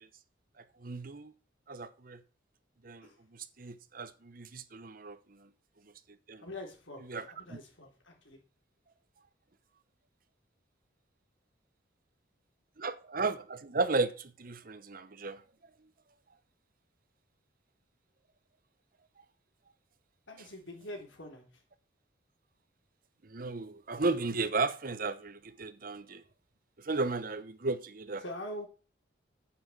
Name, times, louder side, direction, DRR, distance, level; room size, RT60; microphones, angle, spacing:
voice 1, 0.6-1.3 1.7-2.2 2.8-5.5 6.3-6.4 7.0-7.6 12.8-15.4 23.2-26.2 26.8-28.2, right 3 dB, 50° right, 0.9 m, -35 dB
voice 2, 6.4-8.4 20.3-21.5 28.2-28.7, left 1 dB, 85° left, 4.0 m, -44 dB
9.6 x 6.1 x 8.1 m
head